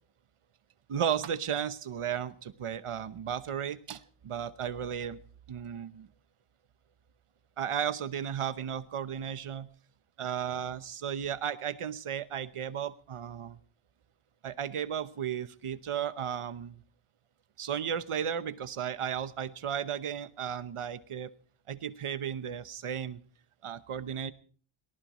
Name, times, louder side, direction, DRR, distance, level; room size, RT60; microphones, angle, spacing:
voice 1, 0.9-5.2 5.5-6.1 7.6-9.7 10.2-13.6 14.4-16.8 17.6-21.3 21.7-23.2 23.6-24.3, right 8 dB, 90° right, 15 dB, 1.0 m, -34 dB
22.5 x 19.0 x 3.0 m, 0.43 s
wide cardioid pair, 95°, 49 cm